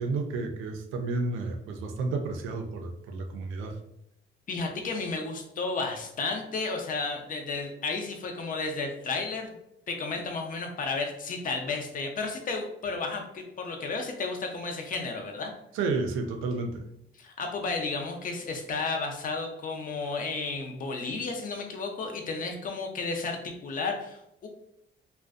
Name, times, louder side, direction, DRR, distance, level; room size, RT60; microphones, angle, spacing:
voice 1, 0.0-3.7 15.7-16.9, right 3 dB, 90° right, 5 dB, 0.4 m, -31 dB
voice 2, 4.5-9.6 9.9-15.5 17.1-24.5, left 4 dB, 45° left, 3 dB, 0.5 m, -33 dB
2.4 x 2.1 x 2.4 m, 0.79 s
cardioid pair, 90°, 20 cm